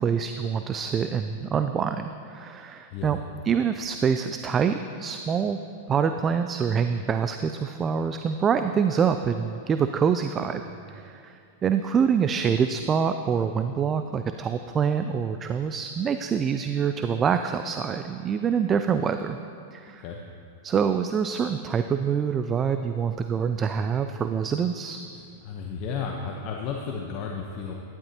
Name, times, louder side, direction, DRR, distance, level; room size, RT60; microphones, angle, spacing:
voice 1, 0.0-3.2 3.4-5.6 5.9-10.6 10.9-19.4 19.7-20.0 20.6-25.0, right 7 dB, 25° right, 8 dB, 0.3 m, -25 dB
voice 2, 25.1-27.7, left 5 dB, 45° left, 0 dB, 0.9 m, -33 dB
12.0 x 10.5 x 2.9 m, 2.4 s
hypercardioid pair, 125°, 0 cm